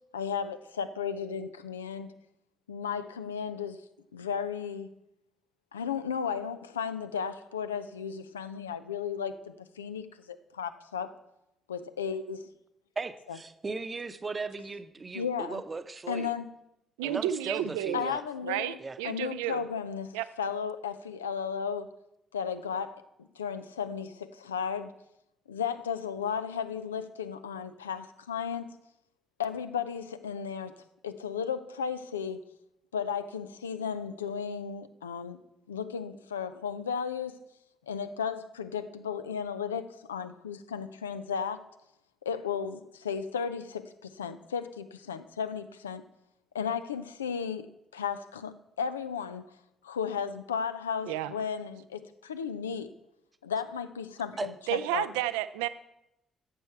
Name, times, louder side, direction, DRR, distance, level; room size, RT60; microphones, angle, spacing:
voice 1, 0.1-2.1 2.7-3.8 4.1-4.9 5.7-11.1 11.7-12.5 13.3-13.4 15.1-15.6 16.1-16.5 17.9-18.8 19.0-20.1 20.4-21.9 22.3-24.9 25.5-28.7 29.4-30.7 31.0-32.4 32.9-35.4 35.7-37.4 37.9-41.6 42.2-46.0 46.5-47.7 47.9-49.4 49.8-52.9 53.4-55.1, left 7 dB, 90° left, 11 dB, 0.4 m, -34 dB
voice 2, 13.0-16.3 17.0-18.2 18.8-19.0 54.4-54.5, right 4 dB, 35° right, 10 dB, 0.8 m, -37 dB
voice 3, 17.0-18.0 18.4-19.6 20.1-20.2 51.1-51.3 54.7-55.7, right 13 dB, 75° right, 14 dB, 0.4 m, -31 dB
11.0 x 7.8 x 4.5 m, 0.84 s
hypercardioid pair, 45°, 0 cm